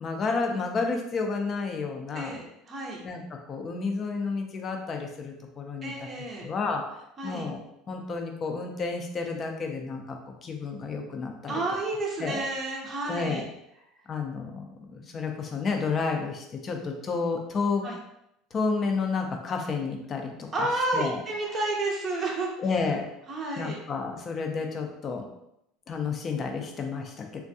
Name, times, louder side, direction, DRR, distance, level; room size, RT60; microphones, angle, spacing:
voice 1, 0.0-2.4 3.0-5.9 6.4-6.8 7.2-7.6 7.9-11.6 12.2-12.4 13.1-13.4 14.1-17.8 18.5-20.3 20.6-20.7 20.9-21.2 22.6-23.0 23.6-25.2 25.9-27.4, left 4 dB, 30° left, 3 dB, 0.5 m, -31 dB
voice 2, 2.1-3.0 5.8-6.4 7.2-7.5 11.5-13.5 17.8-18.0 20.5-22.5 23.3-23.8, right 2 dB, 25° right, -3 dB, 0.6 m, -31 dB
3.5 x 2.2 x 2.6 m, 0.81 s
supercardioid pair, 130°, 0 cm